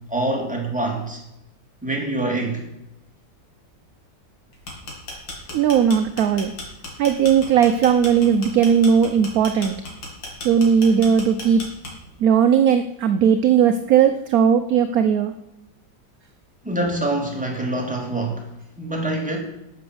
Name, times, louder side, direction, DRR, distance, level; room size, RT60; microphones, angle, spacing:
voice 1, 0.1-1.2 1.8-2.6 16.6-18.5 18.8-19.4, right 2 dB, 5° right, 0 dB, 2.8 m, -25 dB
sound 1, 4.5-12.2, left 2 dB, 65° left, 3.2 m, -35 dB
voice 2, 5.5-6.5 7.0-9.8 10.4-11.6 12.2-15.3, right 7 dB, 65° right, 9 dB, 1.0 m, -17 dB
12.0 x 6.6 x 7.9 m, 0.86 s
omnidirectional pair, 2.1 m